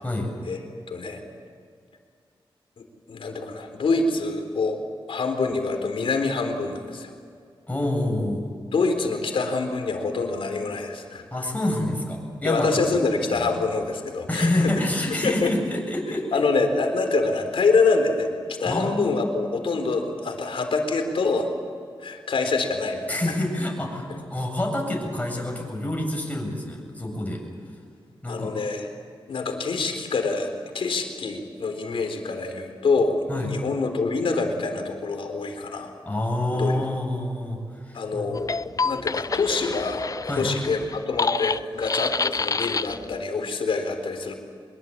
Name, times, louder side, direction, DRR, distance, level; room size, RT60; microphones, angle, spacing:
voice 1, 0.9-1.2 2.8-4.8 5.1-7.1 8.7-11.2 12.4-14.7 15.2-15.5 16.3-21.5 22.0-23.2 24.1-24.2 28.3-28.9 29.3-35.9 36.5-36.8 37.9-40.0 40.4-44.3, left 3 dB, 85° left, 5 dB, 3.8 m, -26 dB
voice 2, 7.7-8.4 11.3-12.7 13.3-13.5 14.3-16.4 18.6-19.6 23.1-27.4 28.2-28.5 33.3-33.5 36.0-38.3 40.3-40.5, left 1 dB, 15° left, 0 dB, 7.9 m, -27 dB
sound 1, 38.3-43.1, left 4 dB, 40° left, 0.5 m, -28 dB
24.0 x 22.0 x 8.7 m, 2.2 s
cardioid pair, 75°, 9 cm